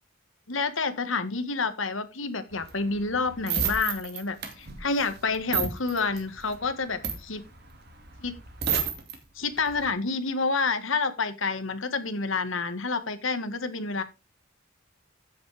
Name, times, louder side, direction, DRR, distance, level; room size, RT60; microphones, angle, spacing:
voice 1, 0.5-7.4 8.2-8.3 9.3-14.0, left 4 dB, 75° left, 10 dB, 1.6 m, -29 dB
sound 1, 2.5-9.2 9.6-9.9, right 7 dB, 50° right, 2.3 m, -32 dB
14.0 x 7.3 x 3.4 m, 0.27 s
head